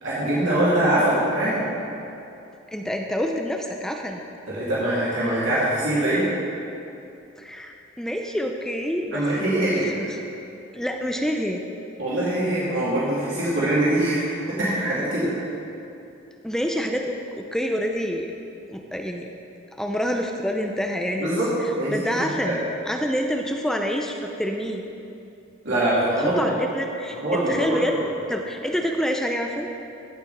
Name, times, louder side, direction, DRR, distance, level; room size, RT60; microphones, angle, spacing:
voice 1, 0.0-1.6 4.5-6.2 9.1-10.1 12.0-15.3 21.2-21.5 21.8-21.9 22.2-22.6 25.6-26.5 27.1-27.8, right 1 dB, 70° right, -10 dB, 2.7 m, -23 dB
voice 2, 2.7-4.2 7.4-10.1 10.7-11.6 16.4-18.3 18.7-19.3 19.7-22.6 22.9-24.8 26.2-27.2 27.4-28.0 28.3-29.7, equal, 5° left, 2 dB, 0.4 m, -27 dB
15.5 x 6.0 x 4.2 m, 2.7 s
head